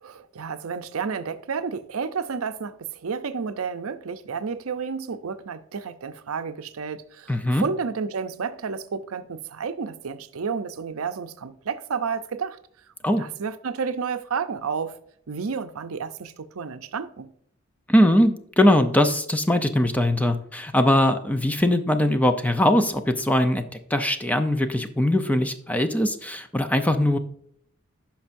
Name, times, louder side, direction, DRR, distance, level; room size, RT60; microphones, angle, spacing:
voice 1, 0.0-7.3 7.6-12.6 13.2-15.0 15.3-17.3, right 5 dB, 80° right, 0.6 m, -31 dB
voice 2, 7.3-7.6 13.0-13.2 17.9-23.7 23.9-27.2, left 1 dB, 5° left, 0.6 m, -21 dB
9.8 x 5.9 x 2.6 m
head